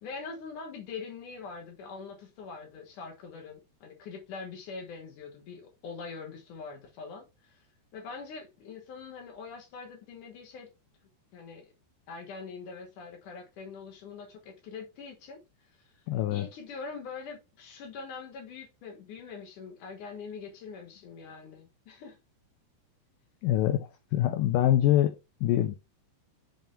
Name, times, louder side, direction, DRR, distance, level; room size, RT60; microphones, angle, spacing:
voice 1, 0.0-7.6 7.9-10.7 11.3-11.7 12.1-15.4 16.3-22.2, left 5 dB, 65° left, 2.3 m, -43 dB
voice 2, 16.1-16.5 23.4-25.8, left 13 dB, 90° left, 1.8 m, -25 dB
5.9 x 5.4 x 3.2 m
omnidirectional pair, 4.6 m